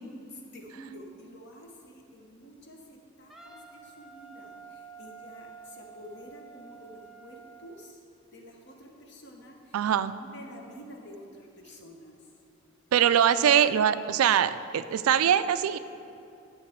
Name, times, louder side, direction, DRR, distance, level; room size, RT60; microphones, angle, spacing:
voice 1, 0.3-8.0 8.3-9.8 10.1-12.2 13.3-13.5, equal, 55° left, 1 dB, 1.1 m, -49 dB
Wind instrument woodwind instrument, 3.3-7.7, right 6 dB, ahead, 0.5 m, -49 dB
voice 2, 9.7-10.1 12.9-15.8, right 9 dB, 85° right, 13 dB, 0.3 m, -23 dB
11.0 x 6.8 x 3.6 m, 2.6 s
head